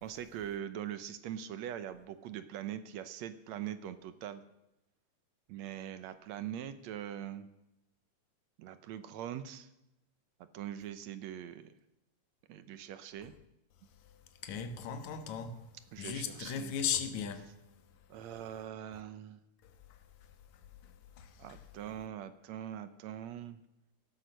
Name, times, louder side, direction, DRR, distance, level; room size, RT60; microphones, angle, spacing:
voice 1, 0.0-4.4 5.5-7.5 8.6-9.7 10.5-11.7 12.5-13.3 15.9-16.7 18.1-19.4 21.4-23.6, right 10 dB, 75° right, 2.0 m, -42 dB
voice 2, 14.4-15.6 16.0-17.5 21.2-21.6, left 7 dB, 75° left, 2.6 m, -36 dB
17.0 x 12.0 x 6.5 m
omnidirectional pair, 3.4 m